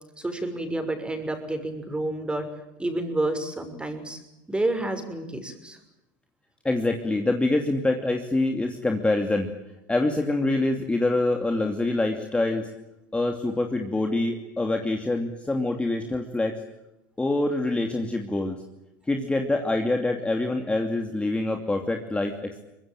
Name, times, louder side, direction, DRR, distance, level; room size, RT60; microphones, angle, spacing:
voice 1, 0.2-2.5 2.8-4.2 4.5-5.8, right 2 dB, 10° right, 6 dB, 6.2 m, -29 dB
voice 2, 6.6-9.5 9.9-12.7 13.1-16.6 17.2-18.6 19.0-22.6, left 2 dB, 10° left, 3 dB, 2.8 m, -25 dB
24.0 x 21.5 x 9.2 m, 0.93 s
supercardioid pair, 100°, 10 cm